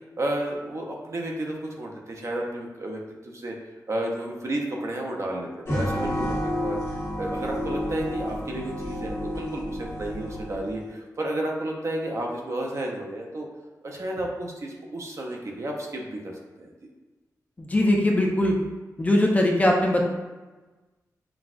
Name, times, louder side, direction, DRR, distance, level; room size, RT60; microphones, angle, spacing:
voice 1, 0.2-3.5 3.9-6.8 7.2-13.5 13.8-16.3 16.6-16.7, right 1 dB, 45° right, 0 dB, 0.6 m, -32 dB
sound 1, 5.7-10.8, equal, 40° left, 1.3 m, -30 dB
voice 2, 17.6-18.6 19.0-20.0, left 1 dB, 20° left, 0 dB, 0.4 m, -21 dB
5.9 x 2.3 x 2.5 m, 1.2 s
wide cardioid pair, 135°, 7 cm